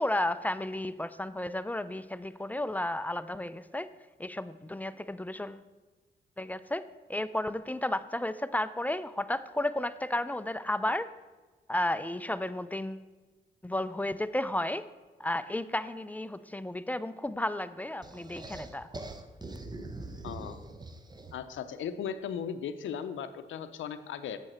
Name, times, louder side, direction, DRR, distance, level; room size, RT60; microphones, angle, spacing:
voice 1, 0.0-3.9 4.2-5.6 6.4-6.8 7.1-11.1 11.7-13.1 13.6-14.8 15.2-18.9, left 1 dB, 10° left, 14 dB, 0.4 m, -33 dB
sound 1, 18.0-21.6, right 2 dB, 20° right, 0.7 m, -43 dB
voice 2, 20.2-20.6 21.3-24.4, left 7 dB, 80° left, 12 dB, 0.6 m, -37 dB
7.8 x 6.9 x 4.3 m, 1.2 s
cardioid pair, 55°, 20 cm